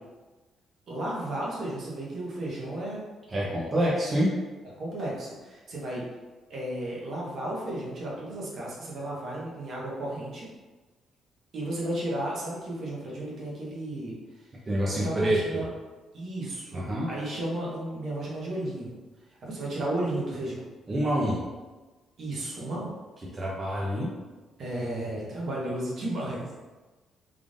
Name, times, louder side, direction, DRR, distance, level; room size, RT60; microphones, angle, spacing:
voice 1, 0.9-3.0 4.8-6.0 6.5-10.5 11.5-14.1 15.0-15.7 16.1-18.9 19.4-20.6 22.2-22.9 24.6-26.5, right 1 dB, 60° right, -5 dB, 1.2 m, -33 dB
voice 2, 3.3-4.3 14.7-15.6 16.7-17.1 20.9-21.4 23.3-24.1, right 1 dB, 30° right, -6 dB, 0.8 m, -26 dB
3.6 x 3.3 x 2.5 m, 1.2 s
cardioid pair, 90°, 0 cm